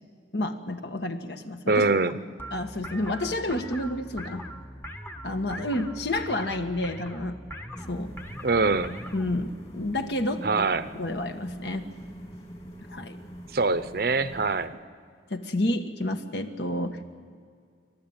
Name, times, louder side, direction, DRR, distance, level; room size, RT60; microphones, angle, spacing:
voice 1, 0.3-1.8 2.5-4.4 5.2-7.3 7.9-8.1 9.1-10.7 10.9-11.8 12.9-13.2 15.3-17.2, left 1 dB, 70° left, 6 dB, 1.5 m, -30 dB
voice 2, 1.7-2.2 8.4-8.9 10.4-10.9 13.5-14.7, right 3 dB, 55° right, 12 dB, 0.8 m, -23 dB
sound 1, 2.4-9.5, equal, 10° left, 1.0 m, -41 dB
sound 2, 7.7-14.7, equal, 35° left, 2.6 m, -43 dB
28.5 x 12.5 x 8.9 m, 2.2 s
head